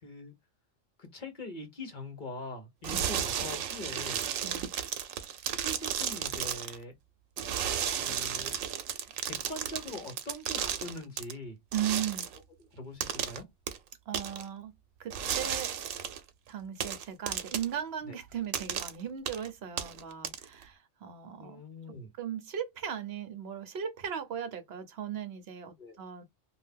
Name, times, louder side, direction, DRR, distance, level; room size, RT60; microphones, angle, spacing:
voice 1, 0.0-0.3 1.0-4.2 5.5-6.9 8.0-8.6 9.2-11.6 12.6-13.5 18.1-18.2 21.4-22.1 25.8-26.0, left 1 dB, 40° left, 1.0 m, -42 dB
sound 1, 2.8-6.8 7.4-11.3 11.7-12.4 13.0-13.4 13.7-13.8 14.1-14.4 15.1-16.2 16.8-17.7 18.5-18.9 19.3-19.5 19.8-20.6, right 9 dB, 90° right, 1.0 m, -34 dB
voice 2, 11.7-12.3 14.1-14.7 15.0-15.7 16.5-21.6 22.2-26.2, right 9 dB, 60° right, 0.8 m, -37 dB
2.7 x 2.3 x 3.4 m
omnidirectional pair, 1.3 m